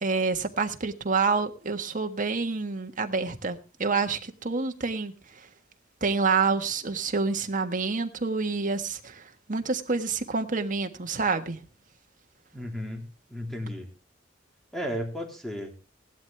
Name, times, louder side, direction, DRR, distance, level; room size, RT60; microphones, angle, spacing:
voice 1, 0.0-5.5 6.0-9.2 9.5-11.6, right 4 dB, 45° right, 1.5 m, -28 dB
voice 2, 12.5-13.9 14.7-15.7, equal, ahead, 3.4 m, -34 dB
17.5 x 12.0 x 3.4 m
head